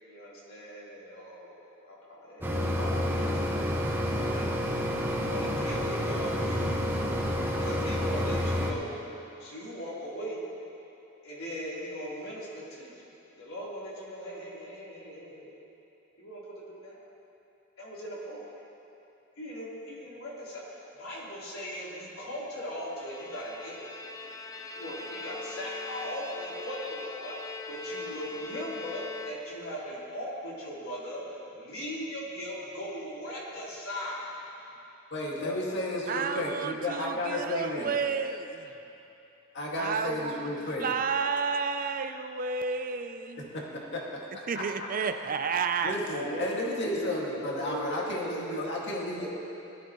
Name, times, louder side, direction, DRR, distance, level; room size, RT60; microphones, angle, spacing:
voice 1, 0.0-1.5 1.8-4.7 5.2-6.8 7.5-9.0 9.4-10.4 11.2-15.5 16.2-17.0 17.8-18.6 19.4-23.8 24.8-34.3 35.4-35.7 46.1-48.7 49.2-49.3, equal, 85° left, 3.6 m, -39 dB
Mechanisms, 2.4-8.7, equal, 10° right, 1.1 m, -29 dB
Bowed string instrument, 22.8-29.8, left 4 dB, 15° left, 0.6 m, -41 dB
voice 2, 35.1-37.9 39.5-40.9 43.4-43.6 43.9-44.0 44.5-44.9 45.8-49.3, left 1 dB, 55° left, 2.1 m, -33 dB
voice 3, 36.1-38.7 39.8-43.5 44.5-46.0, right 5 dB, 40° right, 0.5 m, -31 dB
20.0 x 12.5 x 3.1 m
head